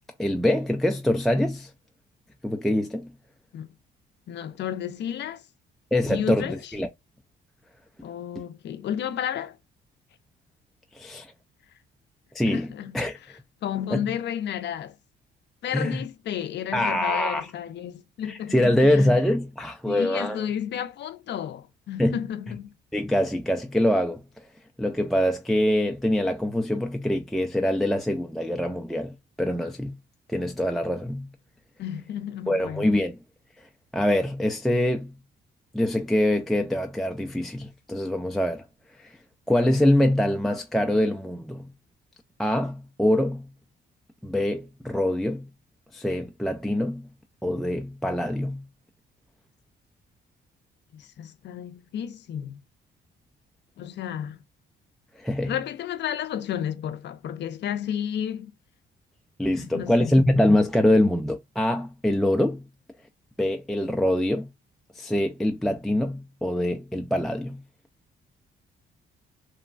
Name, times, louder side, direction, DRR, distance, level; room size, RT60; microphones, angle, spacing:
voice 1, 0.2-1.7 2.4-3.1 5.9-6.9 10.9-11.3 12.3-13.2 13.9-14.0 15.7-16.0 16.7-17.5 18.3-20.4 22.0-22.2 22.9-24.2 24.8-30.0 30.3-31.3 32.5-33.2 33.9-35.1 35.7-38.6 39.0-39.2 39.5-41.7 42.4-43.5 44.2-45.5 45.9-47.1 47.4-48.6 55.2-55.5 59.4-62.6 63.4-64.5 65.0-67.6, left 1 dB, ahead, 0.3 m, -24 dB
voice 2, 4.3-5.5 6.1-6.7 8.0-9.6 12.5-13.0 13.6-15.0 15.6-19.1 19.9-22.7 31.8-32.9 50.9-52.6 53.8-54.4 55.5-58.5 59.6-60.1, left 9 dB, 60° left, 0.5 m, -32 dB
3.0 x 2.2 x 2.4 m
cardioid pair, 90°, 20 cm